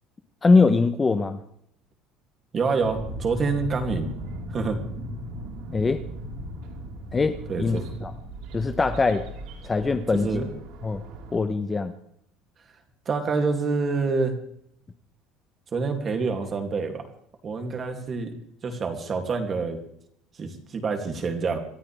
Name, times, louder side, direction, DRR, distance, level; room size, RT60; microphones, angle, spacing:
voice 1, 0.4-1.4 5.7-6.0 7.1-8.1 8.5-9.3 9.6-10.4 10.8-11.0 11.3-11.9, left 4 dB, 15° left, 8 dB, 0.9 m, -22 dB
voice 2, 2.5-4.1 4.5-4.8 7.5-7.9 10.1-10.5 13.1-14.4 15.7-17.1 17.4-18.3 18.6-19.8 20.4-21.6, right 4 dB, 25° right, 5 dB, 2.7 m, -27 dB
sound 1, 2.8-11.4, right 1 dB, 65° right, 5.5 m, -37 dB
28.0 x 13.5 x 3.5 m, 0.70 s
cardioid pair, 170°, 0 cm